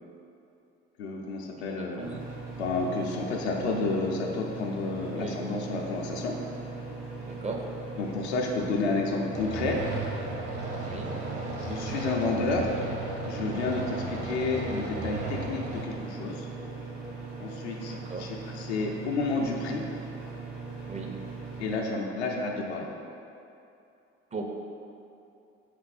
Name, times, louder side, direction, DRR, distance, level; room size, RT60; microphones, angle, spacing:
voice 1, 1.0-2.2 2.6-6.4 8.0-9.8 11.6-12.7 13.2-16.5 17.4-19.8 21.6-22.9, left 3 dB, 80° left, 0 dB, 0.5 m, -30 dB
voice 2, 1.6-2.1 5.2-5.4 7.2-7.7 10.9-11.1 14.0-14.2 17.9-18.3 20.9-21.2 24.3-24.4, right 3 dB, 20° right, 1 dB, 0.4 m, -37 dB
sound 1, 2.0-21.8, right 3 dB, 65° right, 1.4 m, -40 dB
sound 2, 9.3-15.8, right 2 dB, 50° right, 0.8 m, -35 dB
3.6 x 3.3 x 3.2 m, 2.7 s
hypercardioid pair, 50°, 32 cm